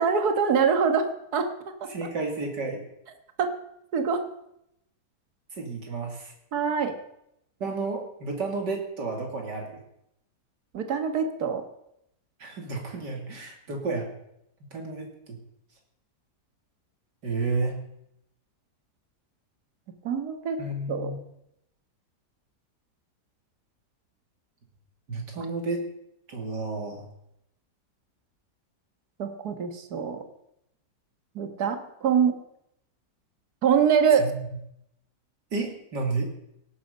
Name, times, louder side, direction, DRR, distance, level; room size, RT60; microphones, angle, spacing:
voice 1, 0.0-2.1 3.4-3.5 3.9-4.3 6.5-7.0 10.7-11.6 20.0-20.6 20.9-21.1 25.4-25.5 29.2-30.2 31.4-32.4 33.6-34.2, right 6 dB, 65° right, 7 dB, 1.9 m, -24 dB
voice 2, 1.9-2.8 5.5-6.3 7.6-9.8 12.4-14.1 14.7-15.4 17.2-17.8 20.6-21.2 25.1-25.8 26.3-27.1 34.2-34.3 35.5-36.3, right 3 dB, 90° right, 2 dB, 3.3 m, -31 dB
17.5 x 11.5 x 5.5 m, 0.79 s
omnidirectional pair, 1.8 m